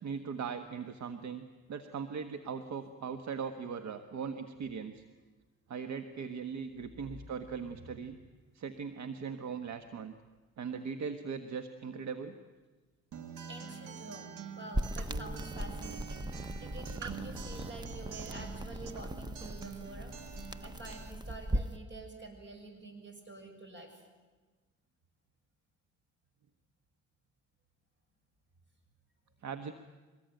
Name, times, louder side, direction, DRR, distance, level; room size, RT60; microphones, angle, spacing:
voice 1, 0.0-5.0 5.7-8.2 8.5-10.1 10.6-12.4 29.4-29.7, right 6 dB, 65° right, 8 dB, 1.4 m, -39 dB
voice 2, 7.6-8.0 13.5-20.2 20.6-24.0, right 2 dB, 40° right, 5 dB, 6.6 m, -48 dB
Acoustic guitar, 13.1-21.1, right 6 dB, 85° right, 2.0 m, -46 dB
sound 1, 14.7-21.8, right 1 dB, 15° right, 0.9 m, -38 dB
24.0 x 20.0 x 9.2 m, 1.3 s
cardioid pair, 90°, 30 cm